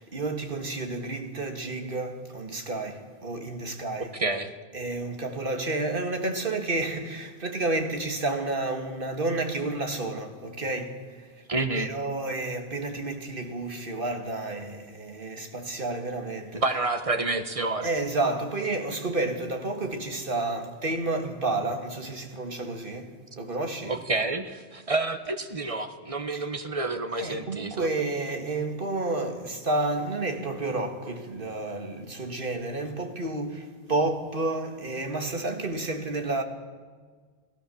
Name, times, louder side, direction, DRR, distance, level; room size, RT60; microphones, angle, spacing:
voice 1, 0.0-4.1 4.7-11.3 11.7-16.6 17.8-24.0 26.3-26.4 27.2-36.4, right 2 dB, 50° right, 2.3 m, -30 dB
voice 2, 4.2-4.5 11.5-11.9 16.5-17.9 23.9-27.9, right 2 dB, 30° right, 1.4 m, -29 dB
29.5 x 16.5 x 7.1 m
omnidirectional pair, 1.1 m